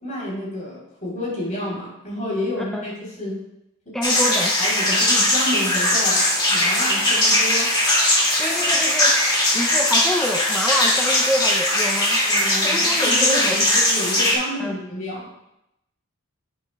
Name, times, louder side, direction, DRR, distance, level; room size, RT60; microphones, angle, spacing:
voice 1, 0.0-3.4 4.0-4.2 4.6-7.7 12.2-15.3, left 1 dB, 35° left, -5 dB, 3.4 m, -30 dB
voice 2, 3.9-4.6 8.4-9.2 9.5-12.2 12.6-13.7 14.6-14.8, left 1 dB, ahead, 0 dB, 0.4 m, -26 dB
sound 1, 4.0-14.3, left 1 dB, 20° left, 2.1 m, -19 dB
10.5 x 8.4 x 2.2 m, 0.82 s
head